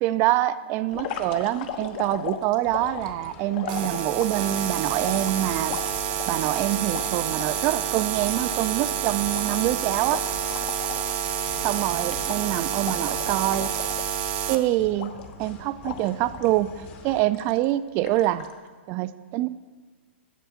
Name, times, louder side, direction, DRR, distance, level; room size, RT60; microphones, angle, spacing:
voice 1, 0.0-5.8 6.3-10.2 11.6-13.7 14.5-18.5 18.9-19.5, right 15 dB, 35° right, 14 dB, 0.4 m, -25 dB
sound 1, 0.9-4.5 5.0-7.5 7.9-8.0 8.2-11.1 11.4-11.6 12.0-14.5 15.0-15.5 15.8-16.5 17.0-17.6 18.0-18.5, left 8 dB, 50° left, 1.1 m, -37 dB
sound 2, 2.6-17.2, left 4 dB, 30° left, 1.2 m, -46 dB
sound 3, 3.7-14.6, right 9 dB, 50° right, 0.9 m, -28 dB
8.1 x 7.4 x 7.1 m, 1.5 s
hypercardioid pair, 135°, 7 cm